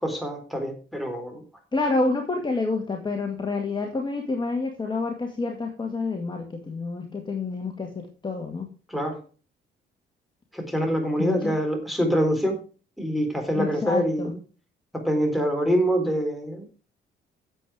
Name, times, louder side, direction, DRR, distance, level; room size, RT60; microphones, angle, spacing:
voice 1, 0.0-1.4 8.9-9.2 10.5-12.6 13.0-14.4 14.9-16.6, equal, ahead, 3 dB, 3.8 m, -25 dB
voice 2, 1.7-8.7 11.2-11.5 13.6-14.3, left 3 dB, 25° left, 2 dB, 2.0 m, -28 dB
9.2 x 7.7 x 4.9 m, 0.36 s
cardioid pair, 90°, 20 cm